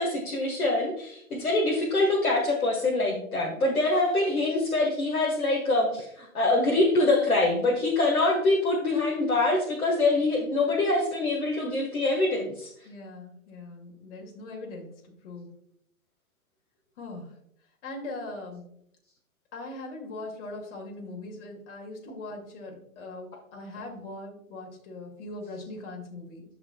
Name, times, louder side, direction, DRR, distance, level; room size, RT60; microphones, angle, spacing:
voice 1, 0.0-12.7, left 2 dB, 85° left, -1 dB, 1.6 m, -24 dB
voice 2, 12.8-15.5 17.0-17.3 17.8-18.6 19.5-26.4, left 2 dB, 55° left, 1 dB, 2.5 m, -40 dB
14.0 x 5.1 x 2.3 m, 0.71 s
figure-of-eight pair, 115°, 42 cm